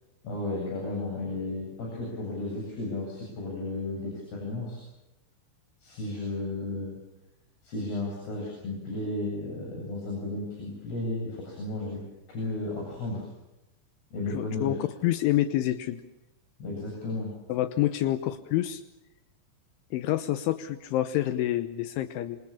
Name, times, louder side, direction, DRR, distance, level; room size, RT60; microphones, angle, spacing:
voice 1, 0.2-4.8 5.8-7.0 7.6-12.0 12.3-13.3 14.1-14.8 16.6-17.3, left 2 dB, 55° left, -1 dB, 9.8 m, -33 dB
voice 2, 14.3-14.8 15.0-16.0 17.5-18.8 19.9-22.4, left 14 dB, 80° left, 11 dB, 3.5 m, -27 dB
27.0 x 27.0 x 7.2 m, 0.92 s
omnidirectional pair, 5.5 m